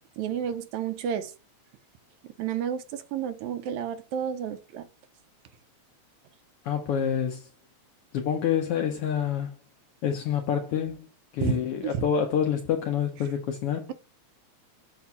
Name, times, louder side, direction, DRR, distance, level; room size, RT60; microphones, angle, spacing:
voice 1, 0.0-1.3 2.4-4.9 11.4-12.0, right 8 dB, 90° right, 2.1 m, -31 dB
voice 2, 6.6-7.5 8.1-9.5 10.0-11.1 11.3-13.9, left 8 dB, 70° left, 1.4 m, -27 dB
7.1 x 2.6 x 5.7 m
omnidirectional pair, 3.3 m